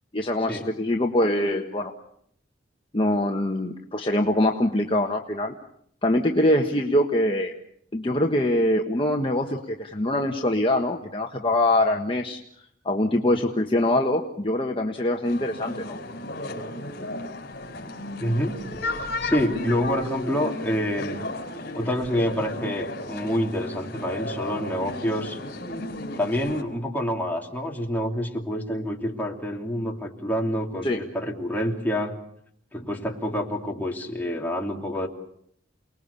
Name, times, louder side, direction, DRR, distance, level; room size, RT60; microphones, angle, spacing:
voice 1, 0.1-1.9 2.9-5.5 6.0-7.5 7.9-12.4 12.8-16.0 30.8-31.0, left 1 dB, 30° left, 2 dB, 1.4 m, -23 dB
sound 1, 15.2-26.6, left 1 dB, 60° left, 4.5 m, -34 dB
voice 2, 18.2-21.2 21.7-25.4 26.1-32.2 32.7-35.1, equal, 10° left, 0 dB, 3.1 m, -27 dB
29.5 x 20.0 x 7.0 m, 0.70 s
head